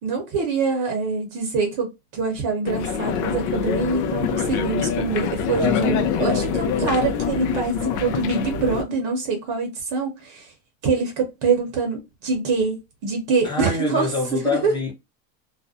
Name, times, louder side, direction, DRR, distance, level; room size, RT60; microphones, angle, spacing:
voice 1, 0.0-10.5 10.8-12.8 13.0-14.1 14.4-14.7, right 4 dB, 50° right, 0.8 m, -24 dB
sound 1, 2.6-8.8, left 7 dB, 50° left, 0.5 m, -25 dB
voice 2, 5.6-6.6 13.4-14.9, left 2 dB, 10° left, 0.8 m, -27 dB
2.4 x 2.0 x 2.5 m
supercardioid pair, 145°, 41 cm